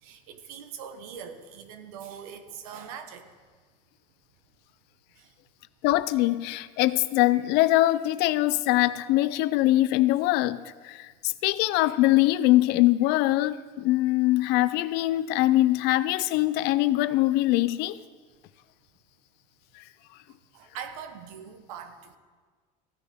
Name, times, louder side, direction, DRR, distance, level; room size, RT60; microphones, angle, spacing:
voice 1, 0.0-3.3 5.2-5.3 20.5-22.2, right 7 dB, 85° right, 1.2 m, -42 dB
voice 2, 5.8-10.6 10.8-18.0, left 16 dB, 65° left, 0.5 m, -23 dB
15.5 x 9.8 x 3.7 m
supercardioid pair, 95°, 18 cm